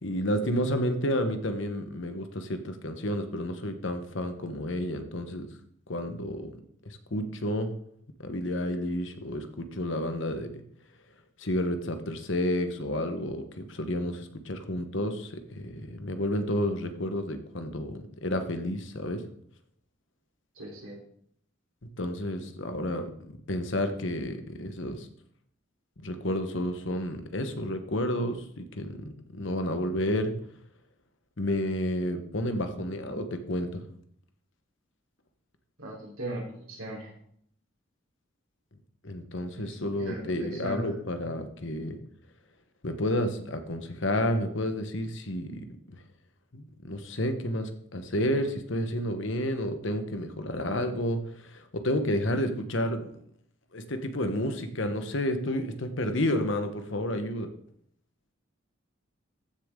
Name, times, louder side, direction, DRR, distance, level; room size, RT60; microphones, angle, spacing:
voice 1, 0.0-5.5 5.9-6.5 6.8-7.7 8.2-10.5 11.4-19.2 22.0-23.1 23.5-25.1 26.0-29.0 29.3-30.3 31.4-33.8 39.0-42.0 42.8-45.7 46.5-53.2 53.7-57.5, left 1 dB, 65° left, 7 dB, 1.2 m, -30 dB
voice 2, 20.6-20.9 35.8-37.1 39.5-41.3, right 1 dB, 90° right, -3 dB, 3.9 m, -39 dB
14.5 x 6.9 x 3.8 m, 0.66 s
head